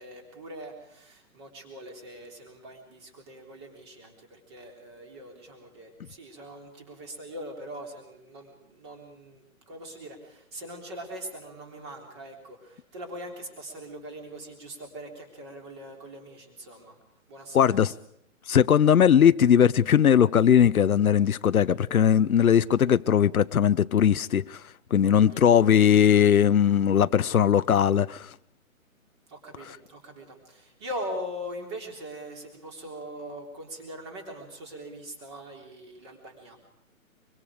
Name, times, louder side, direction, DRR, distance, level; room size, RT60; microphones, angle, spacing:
voice 1, 0.0-17.0 17.3-17.8 25.0-25.5 29.3-36.6, equal, 20° right, 3.5 m, -41 dB
voice 2, 17.5-17.9 18.5-24.6 24.9-28.3, left 8 dB, 80° left, 0.9 m, -19 dB
25.0 x 24.5 x 5.0 m
hypercardioid pair, 180°, 42 cm